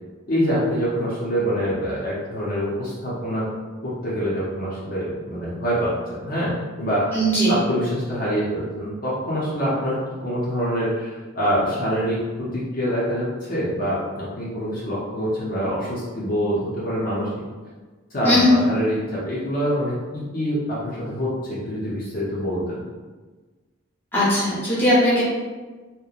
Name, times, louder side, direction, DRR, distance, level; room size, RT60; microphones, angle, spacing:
voice 1, 0.3-3.5 3.8-7.2 7.5-11.1 11.4-17.3 18.1-22.9, equal, 45° left, -8 dB, 0.5 m, -25 dB
voice 2, 7.1-7.6 18.2-18.6 24.1-25.2, left 1 dB, 10° left, -9 dB, 0.7 m, -18 dB
2.8 x 2.1 x 2.3 m, 1.3 s
head